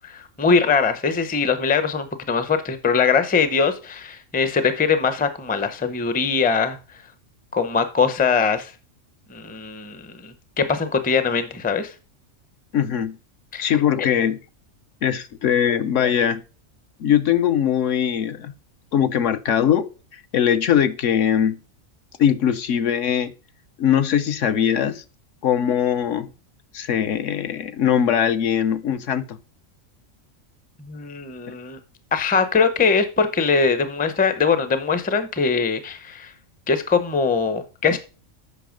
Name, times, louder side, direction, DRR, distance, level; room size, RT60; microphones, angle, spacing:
voice 1, 0.0-6.8 7.5-8.7 9.3-11.9 13.5-14.1 30.9-31.8 32.1-36.3 36.7-38.0, left 5 dB, 10° left, 0.4 m, -22 dB
voice 2, 12.7-13.2 13.6-14.4 15.0-16.4 17.0-18.5 18.9-21.6 22.2-23.3 23.8-25.0 25.4-26.3 26.7-29.4, left 9 dB, 70° left, 1.0 m, -21 dB
8.3 x 5.6 x 5.1 m
omnidirectional pair, 1.4 m